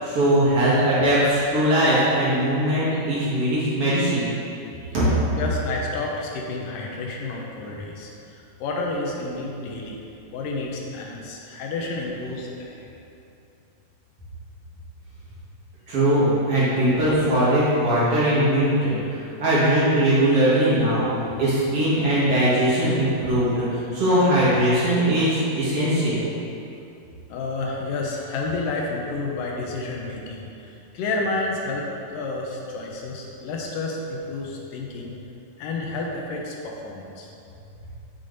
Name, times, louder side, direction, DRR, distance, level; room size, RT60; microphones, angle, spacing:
voice 1, 0.0-4.3 4.9-5.1 15.9-21.1 21.4-26.2, right 1 dB, 50° right, -10 dB, 2.6 m, -20 dB
voice 2, 5.4-10.0 10.3-12.9 27.3-35.1 35.6-37.3, left 3 dB, 80° left, -1 dB, 2.4 m, -30 dB
7.5 x 7.0 x 4.0 m, 2.7 s
omnidirectional pair, 4.0 m